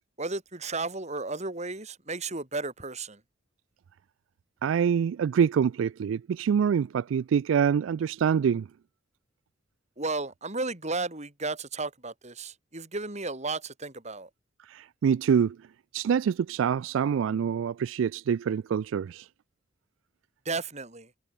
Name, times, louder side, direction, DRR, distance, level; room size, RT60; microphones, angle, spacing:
voice 1, 0.2-3.2 10.0-14.3 20.4-21.1, right 3 dB, 35° right, 4.2 m, -34 dB
voice 2, 4.6-8.7 14.6-15.6 15.9-19.3, right 7 dB, 85° right, 0.3 m, -25 dB
head